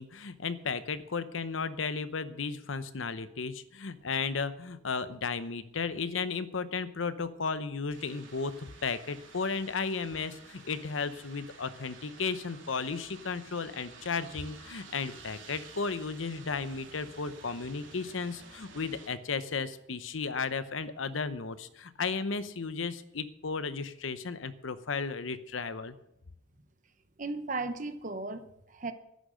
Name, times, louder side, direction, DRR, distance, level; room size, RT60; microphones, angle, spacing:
voice 1, 0.0-26.0, left 5 dB, 80° left, 13 dB, 0.8 m, -34 dB
sound 1, 7.9-19.1, right 4 dB, 75° right, 2.8 m, -52 dB
voice 2, 27.2-28.9, right 3 dB, 40° right, 9 dB, 1.0 m, -36 dB
10.5 x 10.5 x 6.3 m, 0.80 s
head